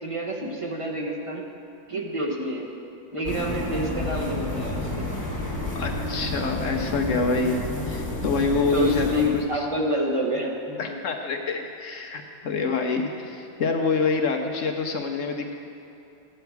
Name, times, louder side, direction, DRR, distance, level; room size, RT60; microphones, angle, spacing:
voice 1, 0.0-1.4 1.9-2.7 3.1-5.0 8.7-10.9, equal, 25° right, -1 dB, 0.8 m, -28 dB
sound 1, 3.2-9.4, left 2 dB, 15° left, 0.8 m, -30 dB
voice 2, 5.7-9.7 10.8-15.5, left 4 dB, 60° left, 3 dB, 0.9 m, -26 dB
13.5 x 8.8 x 4.6 m, 2.8 s
omnidirectional pair, 1.8 m